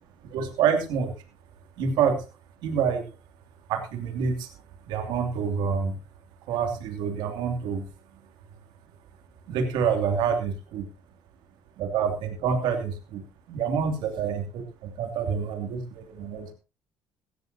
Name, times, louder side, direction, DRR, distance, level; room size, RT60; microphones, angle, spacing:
voice 1, 0.3-1.1 1.8-2.2 2.6-3.0 3.7-4.5 4.9-6.0 6.5-7.9 9.5-10.8 11.8-13.2 13.5-16.5, right 6 dB, 80° right, 5 dB, 2.9 m, -27 dB
17.0 x 13.5 x 2.8 m, 0.31 s
cardioid pair, 95°, 8 cm